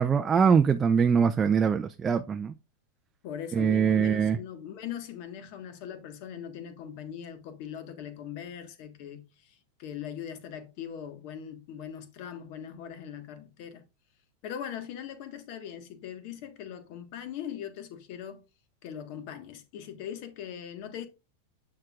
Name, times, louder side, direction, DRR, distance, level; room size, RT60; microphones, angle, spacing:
voice 1, 0.0-2.5 3.5-4.4, right 6 dB, 15° right, 0.4 m, -23 dB
voice 2, 3.2-13.8 14.4-18.4 18.8-21.1, left 9 dB, 50° left, 1.4 m, -40 dB
7.6 x 6.6 x 2.4 m
supercardioid pair, 145°, 0 cm